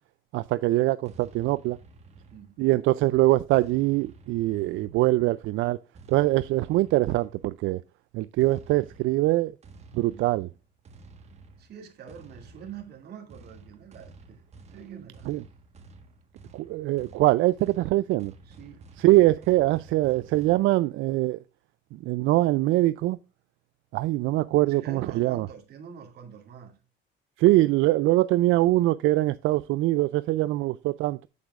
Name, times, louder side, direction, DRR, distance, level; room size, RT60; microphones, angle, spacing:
voice 1, 0.3-1.8 2.6-5.8 6.1-7.8 8.1-9.5 9.9-10.5 15.3-15.4 16.5-18.3 19.0-21.4 22.0-23.2 23.9-25.5 27.4-31.3, right 17 dB, 80° right, 0.4 m, -23 dB
sound 1, 1.0-2.8 3.5-5.2 5.9-7.6 8.4-20.7, right 3 dB, 35° right, 1.4 m, -51 dB
voice 2, 11.6-14.4 14.7-15.3 18.4-18.9 24.6-26.8, right 7 dB, 55° right, 2.4 m, -45 dB
8.4 x 8.1 x 2.4 m
cardioid pair, 155°, 20 cm